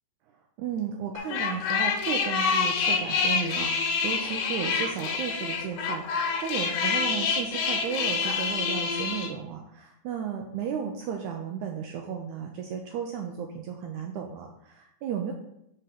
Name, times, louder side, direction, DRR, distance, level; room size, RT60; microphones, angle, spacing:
voice 1, 0.6-15.3, right 7 dB, 80° right, 2 dB, 1.7 m, -34 dB
sound 1, 1.2-9.3, left 5 dB, 75° left, 2.2 m, -27 dB
5.4 x 3.7 x 5.8 m, 0.81 s
omnidirectional pair, 4.0 m